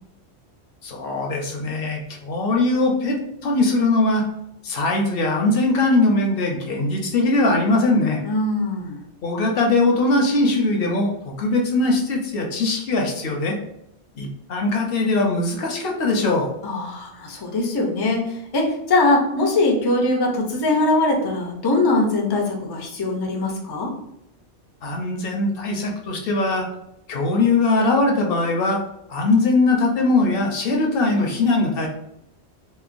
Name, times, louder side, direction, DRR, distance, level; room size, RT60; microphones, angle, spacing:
voice 1, 0.8-3.2 3.4-4.2 4.6-8.2 9.2-13.6 14.2-16.5 24.8-26.7 27.1-28.8 29.1-31.9, left 2 dB, 65° left, 1 dB, 0.7 m, -21 dB
voice 2, 8.2-9.0 16.6-23.9, left 2 dB, 40° left, 0 dB, 0.3 m, -21 dB
2.9 x 2.1 x 2.5 m, 0.77 s
omnidirectional pair, 1.1 m